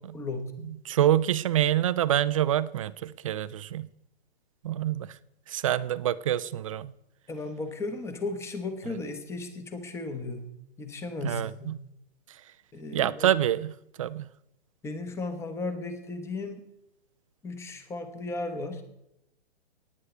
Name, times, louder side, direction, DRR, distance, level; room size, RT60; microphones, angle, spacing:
voice 1, 0.1-0.5 7.3-10.5 10.8-11.7 12.7-13.4 14.8-16.7 17.4-18.8, left 3 dB, 10° left, 1.0 m, -35 dB
voice 2, 0.9-3.9 4.6-5.1 5.5-6.9 11.2-11.8 12.9-13.7 14.0-14.3, right 11 dB, 35° right, 0.4 m, -26 dB
18.0 x 9.6 x 3.3 m
hypercardioid pair, 140°, 32 cm